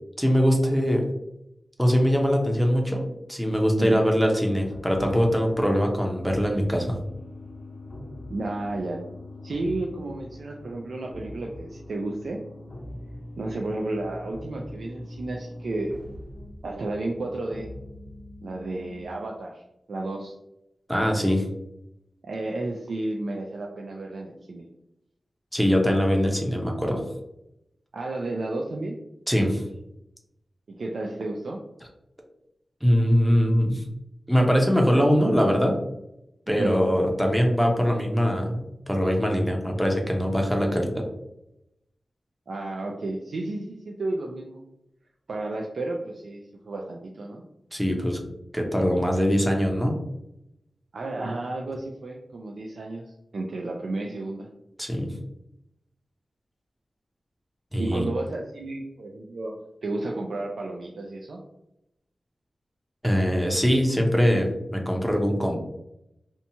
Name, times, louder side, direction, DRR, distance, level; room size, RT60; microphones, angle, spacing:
voice 1, 0.2-1.0 1.8-3.0 3.3-7.0 20.9-21.4 25.5-27.0 29.3-29.6 32.8-33.8 34.3-35.8 36.5-41.0 47.7-48.2 48.5-49.9 54.8-55.1 57.7-58.1 63.0-65.6, equal, ahead, 1 dB, 0.5 m, -22 dB
sound 1, 4.6-19.1, left 1 dB, 55° left, 0.5 m, -42 dB
voice 2, 8.3-9.0 9.4-12.4 13.4-16.0 16.6-17.7 18.4-19.6 19.9-20.3 22.2-24.7 27.9-29.0 30.8-31.6 36.5-36.7 42.5-44.6 45.3-47.4 50.9-54.5 57.8-59.5 59.8-61.4, right 2 dB, 80° right, 0 dB, 0.3 m, -32 dB
2.8 x 2.2 x 2.7 m, 0.85 s
wide cardioid pair, 100°, 0 cm